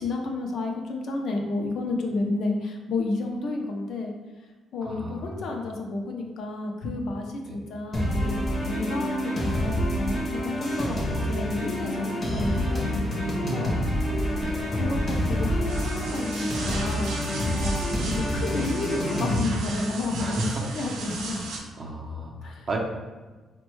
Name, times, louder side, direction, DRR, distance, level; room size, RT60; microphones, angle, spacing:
voice 1, 0.0-4.1 4.7-11.0 11.2-13.8 14.7-17.1 17.6-17.8 18.0-21.4 22.4-22.7, left 2 dB, 55° left, 2 dB, 0.5 m, -31 dB
voice 2, 4.8-5.5 7.4-7.6 10.9-11.3 14.3-14.6 20.1-20.7 21.0-21.1 21.7-22.8, right 2 dB, 35° right, -1 dB, 0.6 m, -34 dB
sound 1, 7.9-19.4, equal, 20° left, 0.7 m, -27 dB
sound 2, 12.5-21.6, right 3 dB, 85° right, 0.6 m, -38 dB
4.3 x 2.2 x 3.1 m, 1.3 s
cardioid pair, 155°, 0 cm